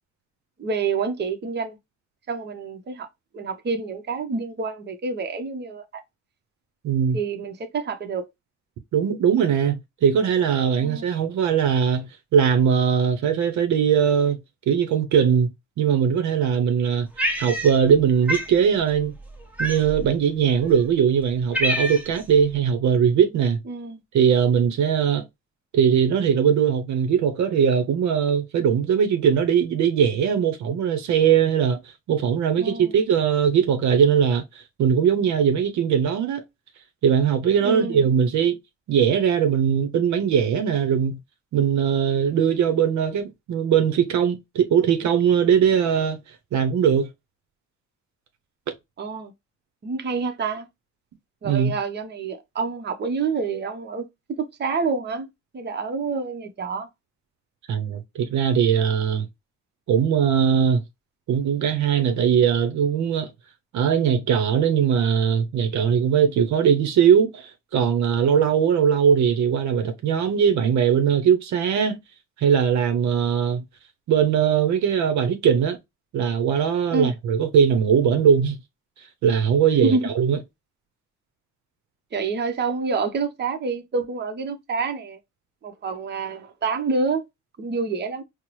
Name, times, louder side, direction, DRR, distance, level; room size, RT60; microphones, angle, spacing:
voice 1, 0.6-1.8 2.3-3.1 3.3-6.0 7.1-8.2 10.8-11.1 23.7-24.0 32.6-32.9 37.6-38.1 49.0-49.3 49.8-50.7 51.4-54.1 54.4-55.3 55.5-56.9 76.9-77.1 79.8-80.0 82.1-85.2 85.6-87.2 87.6-88.2, right 4 dB, 35° right, 0.8 m, -27 dB
voice 2, 6.8-7.2 8.9-14.4 14.7-15.5 15.8-17.1 17.4-19.1 19.6-23.6 24.1-25.2 25.7-31.8 32.1-36.4 37.0-38.6 38.9-41.2 41.5-46.2 46.5-47.1 51.4-51.8 57.7-59.3 59.9-60.8 61.3-63.3 63.7-72.0 72.4-73.6 74.1-75.8 76.1-78.6 79.2-80.4, right 7 dB, 70° right, 0.7 m, -20 dB
Cat, 17.2-18.0 18.3-18.5 19.6-20.1 20.8-20.9 21.2-22.2, equal, 5° right, 0.9 m, -26 dB
4.4 x 2.0 x 3.0 m
cardioid pair, 90°, 30 cm